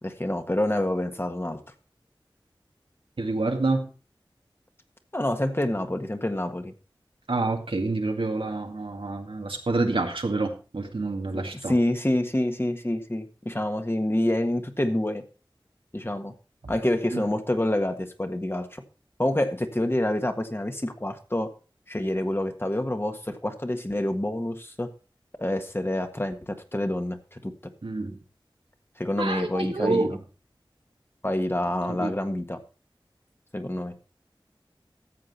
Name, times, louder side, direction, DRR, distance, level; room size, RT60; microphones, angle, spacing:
voice 1, 0.0-1.6 5.1-6.7 11.7-15.2 15.9-16.3 16.7-18.8 19.2-21.5 21.9-24.9 25.4-27.5 29.0-30.1 31.2-32.6 33.5-33.9, left 1 dB, 25° left, 6 dB, 1.5 m, -27 dB
voice 2, 3.2-3.9 7.3-11.7 16.6-16.7 17.1-17.3 27.8-28.2 29.2-30.2 31.9-32.2, right 3 dB, 85° right, 3 dB, 1.9 m, -28 dB
13.5 x 7.6 x 4.2 m, 0.34 s
wide cardioid pair, 50°, 9 cm